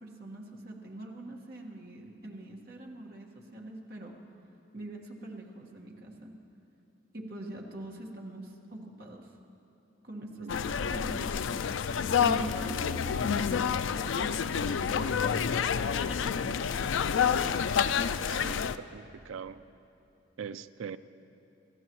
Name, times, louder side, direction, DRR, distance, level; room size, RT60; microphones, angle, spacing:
voice 1, 0.0-4.2 4.7-6.3 7.1-9.3 10.0-11.4 12.2-15.2 16.1-16.8, right 1 dB, 50° right, -1 dB, 1.6 m, -43 dB
sound 1, 10.5-18.8, left 7 dB, 75° left, 0.4 m, -28 dB
voice 2, 18.3-19.6 20.4-21.0, right 7 dB, 90° right, 14 dB, 0.4 m, -42 dB
28.0 x 14.0 x 3.1 m, 2.8 s
head